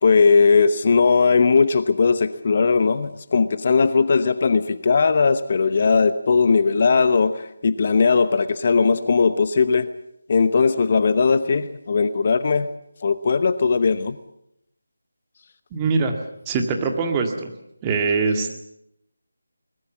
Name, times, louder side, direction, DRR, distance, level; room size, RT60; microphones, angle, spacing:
voice 1, 0.0-9.9 10.3-12.7 13.0-14.2, left 5 dB, 40° left, 13 dB, 0.9 m, -18 dB
voice 2, 15.7-16.2 16.5-17.5 17.8-18.6, right 4 dB, 15° right, 4 dB, 2.0 m, -22 dB
22.0 x 20.0 x 7.3 m, 0.78 s
figure-of-eight pair, 160°, 0 cm